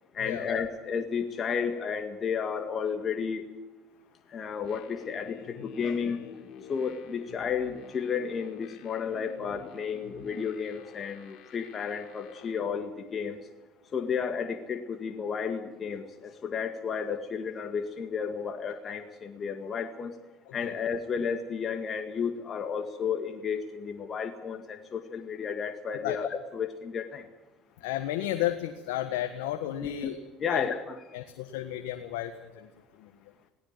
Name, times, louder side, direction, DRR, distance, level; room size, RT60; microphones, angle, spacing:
voice 1, 0.2-3.4 4.3-5.4 5.6-6.2 6.7-13.4 13.9-20.1 20.5-27.2 29.8-30.1 30.4-31.0, left 6 dB, 40° left, 6 dB, 1.9 m, -32 dB
sound 1, 4.6-12.6, left 7 dB, 55° left, 4.0 m, -49 dB
voice 2, 27.8-30.2 30.5-30.7 31.1-32.7 33.0-33.1, left 13 dB, 85° left, 7 dB, 1.5 m, -33 dB
18.0 x 16.5 x 9.1 m, 1.2 s
supercardioid pair, 90°, 0 cm